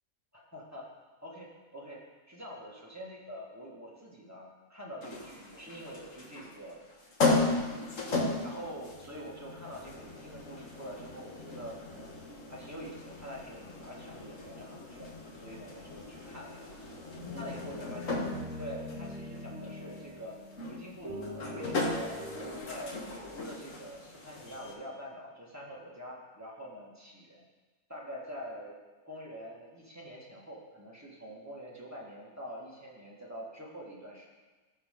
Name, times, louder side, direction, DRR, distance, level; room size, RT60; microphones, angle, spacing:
voice 1, 0.3-0.9 1.2-6.8 7.3-7.9 8.4-12.1 12.5-16.8 17.3-18.2 18.6-20.4 20.6-22.3 22.7-27.4 27.9-28.8 29.0-34.3, equal, 10° right, -4 dB, 1.8 m, -45 dB
sound 1, 5.0-24.7, left 3 dB, 60° left, 1.7 m, -36 dB
sound 2, 17.2-20.6 21.0-22.6, left 1 dB, 55° right, 2.6 m, -42 dB
15.5 x 6.1 x 3.8 m, 1.3 s
omnidirectional pair, 1.5 m